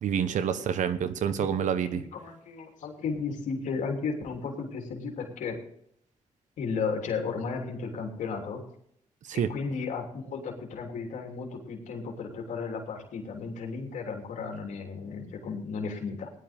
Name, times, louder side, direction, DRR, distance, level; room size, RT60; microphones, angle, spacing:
voice 1, 0.0-2.0 9.3-9.5, right 8 dB, 85° right, 12 dB, 1.1 m, -27 dB
voice 2, 1.4-5.6 6.6-8.6 9.3-16.3, left 5 dB, 90° left, 1 dB, 3.1 m, -34 dB
18.0 x 11.5 x 3.6 m, 0.68 s
cardioid pair, 85°, 12 cm